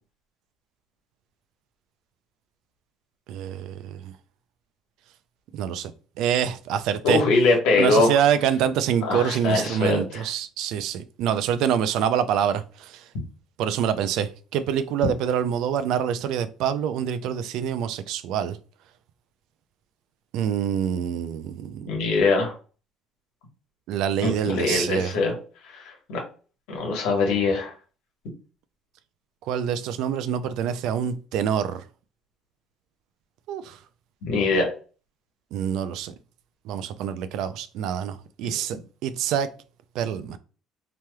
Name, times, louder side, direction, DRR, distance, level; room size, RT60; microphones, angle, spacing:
voice 1, 3.3-4.1 5.5-5.9 6.2-7.2 7.8-13.0 13.6-18.6 20.3-21.9 23.9-25.1 29.5-31.8 33.5-33.8 35.5-36.1 36.7-39.5 39.9-40.4, right 9 dB, 70° right, 0.3 m, -26 dB
voice 2, 7.0-8.1 9.0-10.3 21.9-22.5 24.2-25.3 25.7-25.8 26.1-26.2 26.7-27.7 34.2-34.7 38.4-38.5, left 3 dB, 85° left, 1.2 m, -22 dB
3.2 x 2.9 x 2.2 m
cardioid pair, 160°, 0 cm